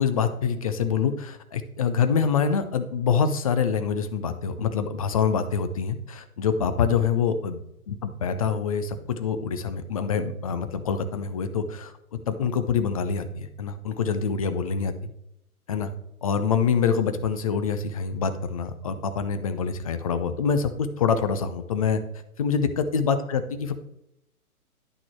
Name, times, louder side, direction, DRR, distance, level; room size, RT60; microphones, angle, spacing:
voice 1, 0.0-7.6 7.9-11.9 12.3-15.1 15.7-15.9 16.2-22.0 22.4-23.8, left 6 dB, 25° left, 10 dB, 0.6 m, -25 dB
11.0 x 5.9 x 4.5 m, 0.78 s
figure-of-eight pair, 125°, 45 cm